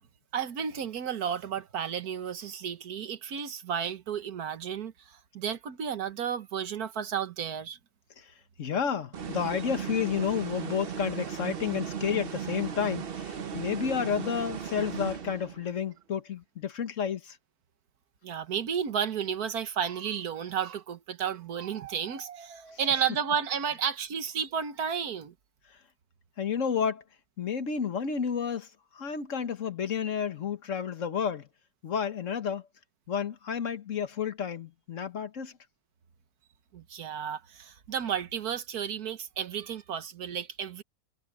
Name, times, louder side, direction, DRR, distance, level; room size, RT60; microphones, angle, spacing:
voice 1, 0.3-7.8 18.2-25.3 36.7-40.8, right 8 dB, 85° right, 1.7 m, -32 dB
voice 2, 8.6-17.4 26.4-27.0 27.4-28.7 28.9-31.4 31.8-32.6 33.1-35.5, left 7 dB, 55° left, 1.6 m, -31 dB
sound 1, 9.1-15.7, right 7 dB, 45° right, 0.9 m, -36 dB
omnidirectional pair, 1.6 m